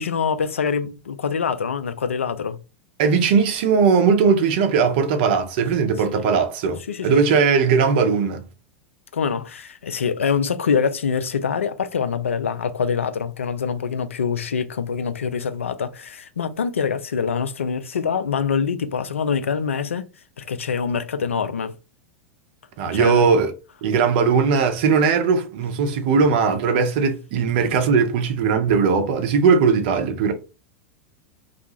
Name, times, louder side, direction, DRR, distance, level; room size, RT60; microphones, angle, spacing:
voice 1, 0.0-2.6 6.1-6.2 6.9-7.2 9.1-20.1 20.4-21.7 22.9-23.3, left 6 dB, 75° left, 0.3 m, -25 dB
voice 2, 3.0-8.4 22.8-23.5 23.8-30.3, right 5 dB, 50° right, 0.6 m, -19 dB
2.4 x 2.2 x 2.9 m
figure-of-eight pair, 90°, 7 cm